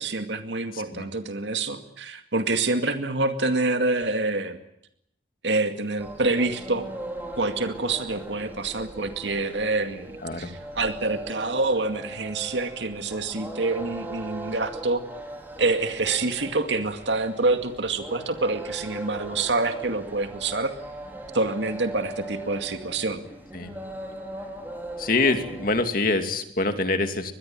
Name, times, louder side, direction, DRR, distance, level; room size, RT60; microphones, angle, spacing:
voice 1, 0.0-4.6 5.4-6.9 7.4-15.0 15.6-20.7 21.3-23.2, right 3 dB, 85° right, 7 dB, 2.2 m, -26 dB
voice 2, 0.7-1.0 10.2-10.5 23.5-23.7 25.0-27.3, left 3 dB, 50° left, 7 dB, 2.6 m, -25 dB
sound 1, 6.0-25.9, right 1 dB, 10° right, 4.7 m, -39 dB
24.5 x 21.5 x 8.9 m, 0.74 s
head